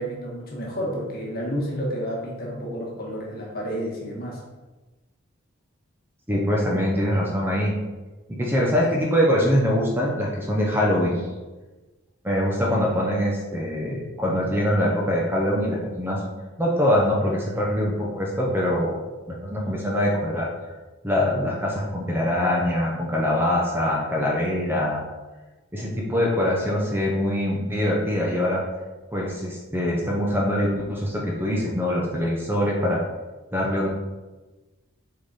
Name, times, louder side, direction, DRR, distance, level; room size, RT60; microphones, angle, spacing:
voice 1, 0.0-4.4, equal, 45° left, -2 dB, 1.5 m, -30 dB
voice 2, 6.3-7.7 8.3-11.3 12.2-16.2 16.6-19.0 19.4-20.5 21.0-25.0 25.7-28.6 29.1-33.0 33.5-33.9, left 1 dB, 10° right, -3 dB, 0.8 m, -23 dB
6.2 x 3.9 x 4.1 m, 1.2 s
head